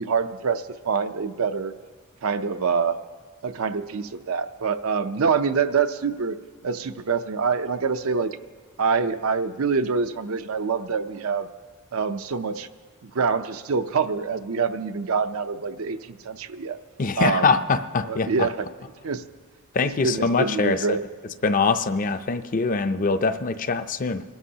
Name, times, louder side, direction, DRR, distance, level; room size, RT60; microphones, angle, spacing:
voice 1, 0.0-1.7 2.2-3.0 3.4-6.4 6.6-8.4 8.8-11.5 11.9-12.7 13.0-16.8 17.2-17.6 18.0-18.7 19.0-19.2 20.0-21.0, right 5 dB, 80° right, 9 dB, 0.6 m, -25 dB
voice 2, 17.0-18.5 19.7-21.0 21.4-24.2, left 4 dB, 40° left, 9 dB, 0.5 m, -23 dB
27.0 x 13.0 x 2.8 m, 1.4 s
head